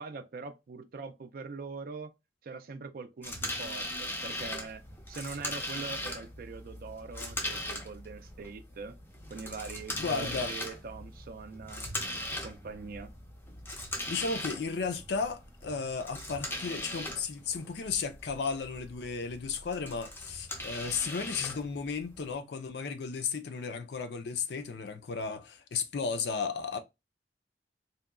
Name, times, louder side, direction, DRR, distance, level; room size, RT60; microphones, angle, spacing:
voice 1, 0.0-2.1 2.4-4.8 5.1-9.0 9.3-11.9 12.4-13.1, right 4 dB, 55° right, 0.4 m, -42 dB
sound 1, 3.2-22.4, left 1 dB, 10° left, 0.5 m, -40 dB
voice 2, 10.0-10.5 14.1-26.8, left 5 dB, 70° left, 0.4 m, -34 dB
2.7 x 2.2 x 2.3 m
head